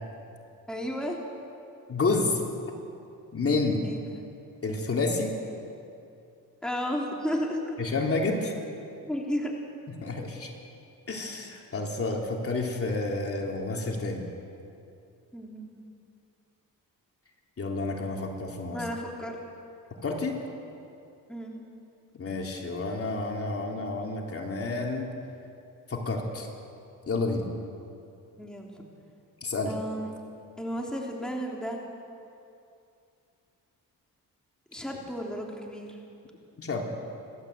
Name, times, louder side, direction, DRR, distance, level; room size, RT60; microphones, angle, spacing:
voice 1, 0.7-1.2 3.8-4.0 6.6-7.8 9.0-9.5 15.3-15.8 18.7-19.4 21.3-21.6 28.4-28.8 29.7-30.1 30.6-31.8 34.7-36.0, equal, ahead, -1 dB, 3.2 m, -33 dB
voice 2, 1.9-2.4 3.3-3.9 4.6-5.3 7.8-8.5 10.0-10.5 11.1-14.3 17.6-18.8 20.0-20.4 22.2-25.1 25.9-26.5 27.1-27.4 29.4-29.7 36.6-36.8, left 3 dB, 40° left, 0 dB, 3.3 m, -29 dB
29.5 x 13.0 x 8.1 m, 2.6 s
cardioid pair, 90°, 36 cm